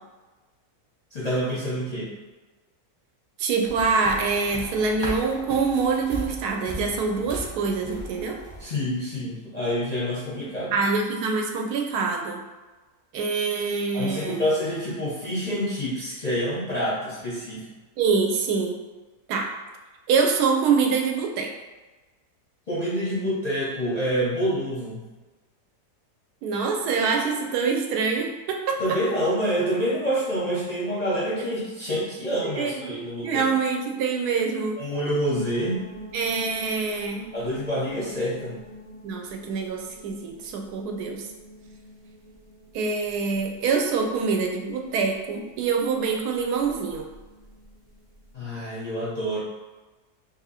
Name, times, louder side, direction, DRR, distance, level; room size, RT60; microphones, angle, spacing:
voice 1, 1.1-2.1 8.6-10.8 13.9-17.7 22.7-25.1 28.8-33.5 34.8-35.9 37.3-38.5 48.3-49.4, equal, 45° left, -8 dB, 0.5 m, -27 dB
voice 2, 3.4-8.4 10.7-12.4 13.1-14.4 18.0-18.8 19.3-19.5 20.1-21.5 26.4-29.0 32.4-33.0 33.2-34.8 36.1-37.3 39.0-41.3 42.7-47.1, right 5 dB, 85° right, 2 dB, 1.1 m, -25 dB
sound 1, 3.6-8.6, equal, 20° right, 0.7 m, -37 dB
sound 2, 35.3-48.3, right 1 dB, 60° right, 0.5 m, -46 dB
2.8 x 2.7 x 4.0 m, 1.2 s
omnidirectional pair, 1.7 m